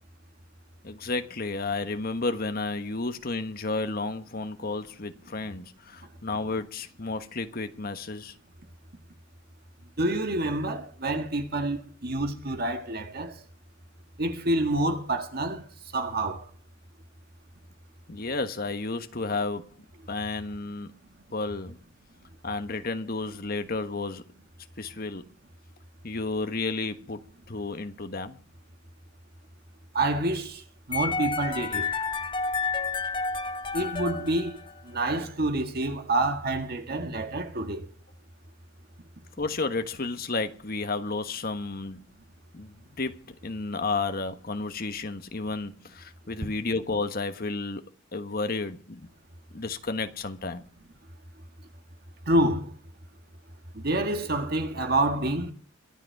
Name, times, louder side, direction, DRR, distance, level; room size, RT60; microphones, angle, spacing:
voice 1, 0.8-8.3 18.1-19.7 20.1-20.9 21.3-21.8 22.4-24.2 24.8-25.2 26.0-27.2 27.5-28.4 39.4-42.0 42.5-47.8 48.1-49.1 49.5-50.6, left 3 dB, 50° left, 1.3 m, -32 dB
voice 2, 10.0-13.3 14.2-15.7 15.9-16.4 29.9-30.6 30.9-31.9 33.7-34.6 34.9-37.9 52.3-52.7 53.7-55.5, right 1 dB, 50° right, 1.8 m, -27 dB
sound 1, 30.9-35.0, left 4 dB, 25° left, 0.9 m, -30 dB
23.5 x 7.9 x 4.7 m
head